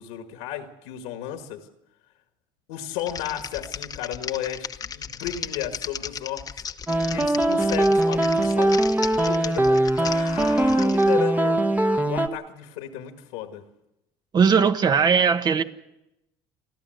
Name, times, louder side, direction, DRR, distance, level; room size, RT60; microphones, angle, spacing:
voice 1, 0.0-1.7 2.7-6.6 7.1-8.8 9.2-11.6 12.1-13.6, left 10 dB, 85° left, 6 dB, 1.9 m, -33 dB
Typing, 3.0-11.1, left 7 dB, 35° left, 1.1 m, -36 dB
sound 1, 6.9-12.3, right 1 dB, 15° right, 1.3 m, -21 dB
voice 2, 14.3-15.6, right 6 dB, 40° right, 10 dB, 1.4 m, -19 dB
30.0 x 11.5 x 7.9 m, 0.90 s
supercardioid pair, 95°, 11 cm